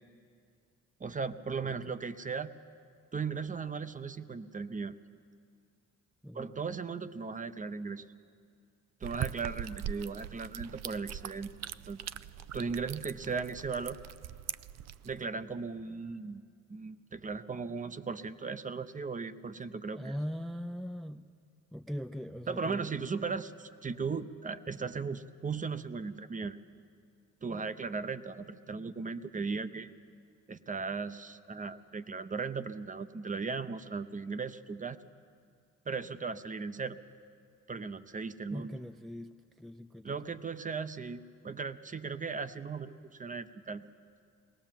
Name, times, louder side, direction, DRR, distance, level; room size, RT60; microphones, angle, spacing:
voice 1, 1.0-2.5 3.1-5.0 6.3-8.0 9.0-11.5 11.9-12.0 12.5-14.0 15.0-16.4 16.7-20.1 22.5-26.6 27.4-29.9 30.5-35.0 35.9-37.0 37.7-38.7 40.0-43.8, right 5 dB, 25° right, 12 dB, 0.7 m, -37 dB
sound 1, 9.0-15.2, right 11 dB, 60° right, 0.5 m, -41 dB
voice 2, 19.9-21.3 21.7-22.8 23.3-23.4 38.5-40.4, equal, ahead, 9 dB, 0.5 m, -41 dB
20.5 x 17.5 x 7.5 m, 2.3 s
cardioid pair, 90°, 30 cm